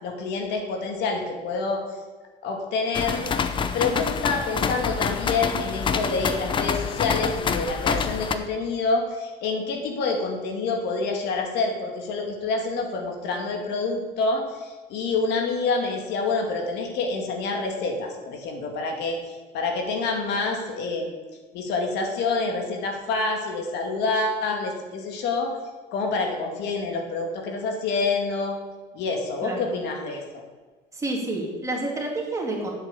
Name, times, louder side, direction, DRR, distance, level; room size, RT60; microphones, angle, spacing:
voice 1, 0.0-1.8 2.4-3.2 3.7-21.1 21.5-25.5 25.9-28.6 28.9-30.4, left 3 dB, 65° left, 2 dB, 2.3 m, -27 dB
sound 1, 2.9-8.3, left 6 dB, 25° left, 0.7 m, -27 dB
voice 2, 29.4-29.7 30.9-32.7, right 2 dB, 15° right, -1 dB, 2.8 m, -29 dB
10.0 x 8.1 x 8.3 m, 1.3 s
cardioid pair, 160°, 18 cm